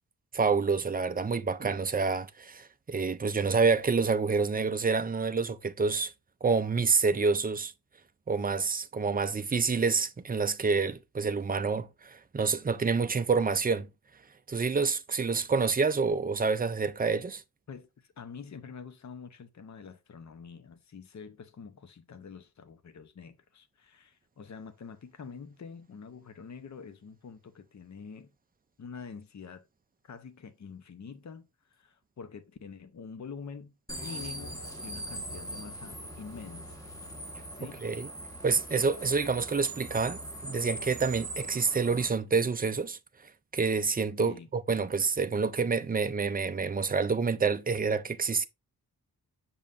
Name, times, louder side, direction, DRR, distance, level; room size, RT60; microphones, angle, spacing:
voice 1, 0.3-6.1 6.4-7.7 8.3-13.9 14.5-17.4 37.8-38.1 38.4-43.0 43.5-48.5, right 4 dB, 25° right, 0.4 m, -28 dB
voice 2, 17.7-28.3 28.8-29.7 30.0-36.9 37.5-37.9 44.2-44.5, left 6 dB, 45° left, 0.7 m, -46 dB
sound 1, 33.9-42.1, right 1 dB, 10° left, 1.5 m, -41 dB
7.0 x 5.4 x 2.5 m
wide cardioid pair, 145°, 39 cm